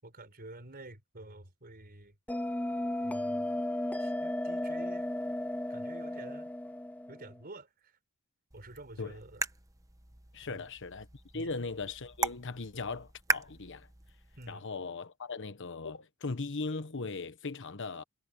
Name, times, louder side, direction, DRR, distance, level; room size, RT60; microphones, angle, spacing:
voice 1, 0.0-2.2 3.0-3.6 4.0-5.1 5.7-6.5 7.1-8.0 8.5-9.4 10.4-10.7 11.3-11.5 14.4-14.7, right 2 dB, 45° right, 4.7 m, -49 dB
Bell, 2.3-7.4, left 1 dB, 5° left, 0.6 m, -35 dB
sound 1, 8.5-14.5, right 3 dB, 15° right, 1.2 m, -39 dB
voice 2, 10.3-11.1 11.3-13.9 14.5-18.0, left 3 dB, 55° left, 1.1 m, -38 dB
head